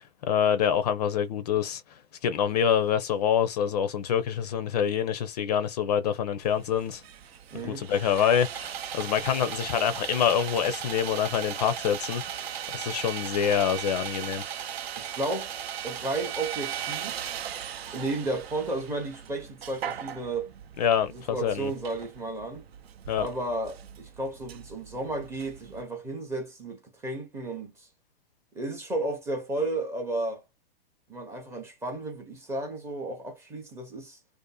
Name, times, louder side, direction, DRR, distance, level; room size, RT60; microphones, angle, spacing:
voice 1, 0.0-7.0 7.6-14.4 20.8-21.7 23.1-23.3, left 8 dB, 40° left, 0.4 m, -26 dB
Sawing, 6.4-25.8, right 9 dB, 75° right, 0.6 m, -38 dB
voice 2, 7.5-7.8 15.0-15.6 15.8-17.3 17.9-20.5 21.1-22.6 23.2-27.9 28.5-30.4 31.1-34.2, right 2 dB, 10° right, 0.5 m, -33 dB
2.6 x 2.4 x 2.2 m
hypercardioid pair, 130°, 31 cm